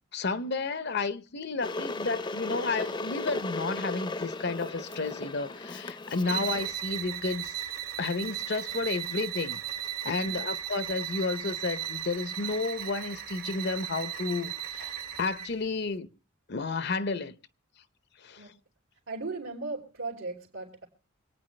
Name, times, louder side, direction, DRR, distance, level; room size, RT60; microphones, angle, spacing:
voice 1, 0.1-7.6 8.0-9.6 10.0-16.1 16.5-17.4 18.2-18.5, left 3 dB, 55° left, 0.7 m, -32 dB
Water / Boiling, 1.6-6.7, left 2 dB, 20° left, 0.6 m, -36 dB
sound 1, 6.2-15.6, right 10 dB, 45° right, 1.0 m, -36 dB
voice 2, 19.1-20.9, right 3 dB, 80° right, 3.2 m, -37 dB
25.5 x 9.4 x 3.2 m
head